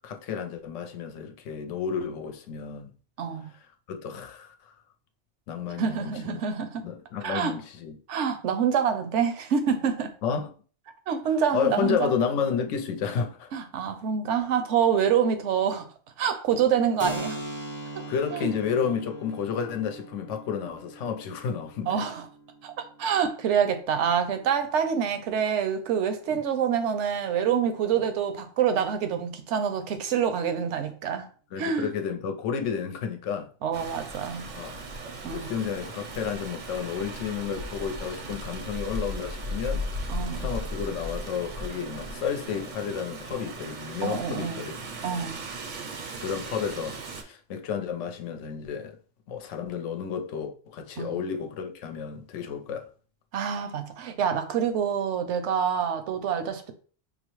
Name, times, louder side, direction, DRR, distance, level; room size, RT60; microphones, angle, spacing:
voice 1, 0.0-2.9 3.9-4.7 5.5-6.4 6.8-8.0 10.2-10.5 11.5-13.5 18.1-22.0 26.3-26.4 31.5-33.5 34.5-34.8 35.2-39.9 40.4-44.8 46.2-49.0 49.3-52.9, left 7 dB, 90° left, 0.9 m, -31 dB
voice 2, 3.2-3.5 5.8-6.9 7.2-7.5 8.1-10.1 11.1-12.1 13.5-15.9 16.2-17.4 18.3-18.5 21.9-22.3 22.6-31.3 31.6-31.9 33.6-34.5 35.2-35.5 40.1-40.5 44.0-44.7 45.0-45.5 51.0-51.2 53.3-56.7, right 7 dB, 80° right, 0.9 m, -26 dB
Keyboard (musical), 17.0-24.4, equal, 15° left, 0.4 m, -40 dB
Rain, 33.7-47.2, right 1 dB, 55° right, 0.6 m, -37 dB
5.4 x 2.0 x 3.0 m
omnidirectional pair, 1.2 m